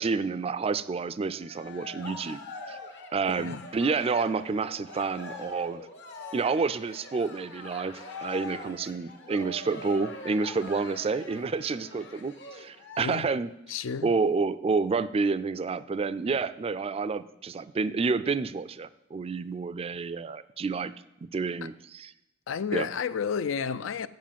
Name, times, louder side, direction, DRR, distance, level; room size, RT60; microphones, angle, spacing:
voice 1, 0.0-2.4 2.7-2.8 3.1-5.8 6.3-13.5 14.0-20.9 21.2-22.1 22.7-22.9, right 4 dB, 30° right, 0.3 m, -29 dB
Cheering, 1.2-13.0, left 2 dB, 65° left, 1.3 m, -43 dB
voice 2, 13.0-13.3 13.7-14.1 21.6-21.7 22.5-24.1, left 6 dB, 80° left, 0.4 m, -31 dB
7.5 x 7.4 x 7.4 m
head